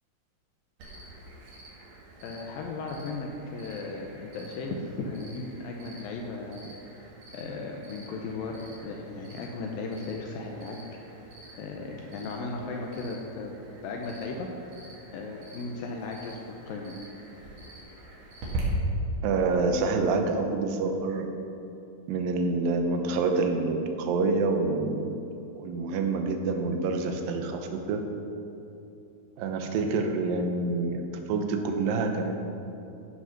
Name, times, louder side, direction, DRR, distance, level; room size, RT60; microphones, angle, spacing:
Cricket, 0.8-18.6, right 2 dB, 65° right, 3.4 m, -46 dB
voice 1, 2.2-6.7 7.3-10.8 11.6-13.5 13.8-14.5 15.1-17.0, left 3 dB, 80° left, 1 dB, 2.5 m, -36 dB
voice 2, 19.2-21.3 22.1-25.2 25.6-28.0 29.4-31.0 31.3-32.4, right 3 dB, 80° right, 4 dB, 2.5 m, -27 dB
13.0 x 6.1 x 5.8 m, 2.9 s
omnidirectional pair, 4.1 m